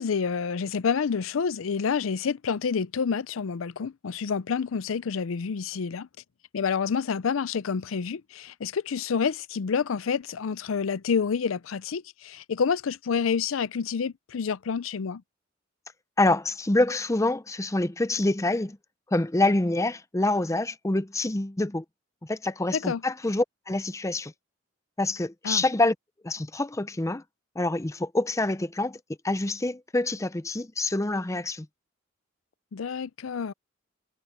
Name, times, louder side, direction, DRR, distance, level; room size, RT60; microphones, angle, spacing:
voice 1, 0.0-6.1 6.5-15.2 22.7-23.0 25.4-25.6 32.7-33.5, left 6 dB, 85° left, 0.5 m, -28 dB
voice 2, 16.2-18.8 19.1-21.8 22.2-24.3 25.0-25.9 26.2-27.2 27.6-29.0 29.2-31.7, left 2 dB, 15° left, 0.6 m, -26 dB
head